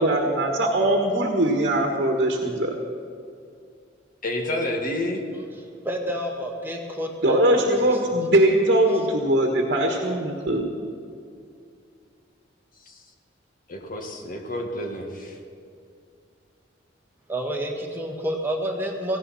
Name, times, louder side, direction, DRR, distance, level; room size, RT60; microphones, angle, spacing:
voice 1, 0.0-2.8 7.2-10.7, right 1 dB, 55° right, 1 dB, 1.5 m, -21 dB
voice 2, 4.2-5.2 12.9-13.0 13.7-15.4, left 1 dB, 50° left, 2 dB, 1.7 m, -29 dB
voice 3, 5.8-7.5 7.9-8.0 17.3-19.2, equal, 10° right, 0 dB, 1.6 m, -29 dB
17.5 x 15.5 x 4.3 m, 2.4 s
head